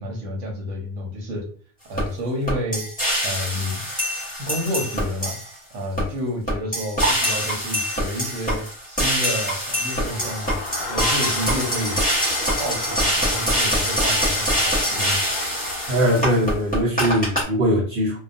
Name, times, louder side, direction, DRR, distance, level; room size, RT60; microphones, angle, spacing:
voice 1, 0.0-1.5 1.9-2.9 3.2-3.8 4.4-5.4 5.7-10.6 10.9-12.0 12.4-15.2, equal, 85° right, -1 dB, 1.1 m, -30 dB
sound 1, 2.0-2.1 2.5-5.6 6.0-6.1 6.5-17.4, equal, 10° left, 0.8 m, -24 dB
Crowd, 9.7-16.5, left 3 dB, 60° left, 0.4 m, -34 dB
voice 2, 15.9-18.2, equal, 55° right, -6 dB, 0.9 m, -21 dB
2.3 x 2.3 x 2.5 m, 0.43 s
omnidirectional pair, 1.2 m